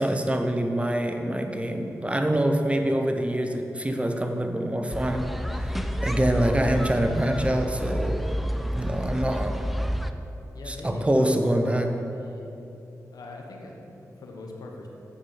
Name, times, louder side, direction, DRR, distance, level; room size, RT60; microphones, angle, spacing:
voice 1, 0.0-8.3 8.7-9.7 10.7-12.0, right 1 dB, 20° right, 5 dB, 0.9 m, -25 dB
sound 1, 4.9-10.1, equal, ahead, 0.5 m, -29 dB
voice 2, 10.5-12.6 13.1-14.9, left 2 dB, 80° left, 1 dB, 1.3 m, -42 dB
8.5 x 6.9 x 5.8 m, 3.0 s
cardioid pair, 55°, 6 cm